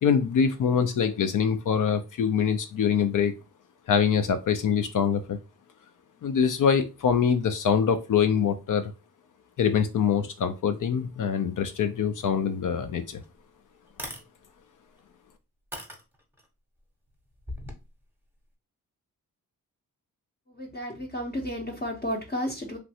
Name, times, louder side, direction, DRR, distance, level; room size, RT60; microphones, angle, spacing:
voice 1, 0.0-3.3 3.9-5.4 6.2-8.9 9.6-13.2, left 7 dB, 60° left, 0.5 m, -24 dB
sound 1, 13.2-13.3 13.9-14.2 15.0-15.1 15.7-16.5 17.4-17.8, equal, 5° right, 0.8 m, -38 dB
voice 2, 20.6-22.8, equal, 25° left, 0.7 m, -32 dB
3.1 x 2.5 x 2.7 m
cardioid pair, 95°, 35 cm